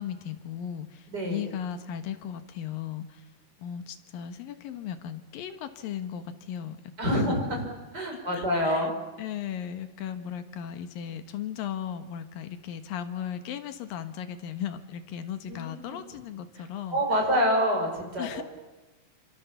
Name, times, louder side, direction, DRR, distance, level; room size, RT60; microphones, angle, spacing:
voice 1, 0.0-3.3 3.6-6.8 7.0-7.4 8.1-8.9 9.2-17.0 18.2-18.4, left 9 dB, 85° left, 9 dB, 3.1 m, -36 dB
voice 2, 1.1-1.4 7.0-7.6 7.9-8.9 15.5-16.0 16.9-18.4, equal, 30° right, 2 dB, 5.7 m, -27 dB
28.0 x 26.0 x 7.1 m, 1.1 s
omnidirectional pair, 3.9 m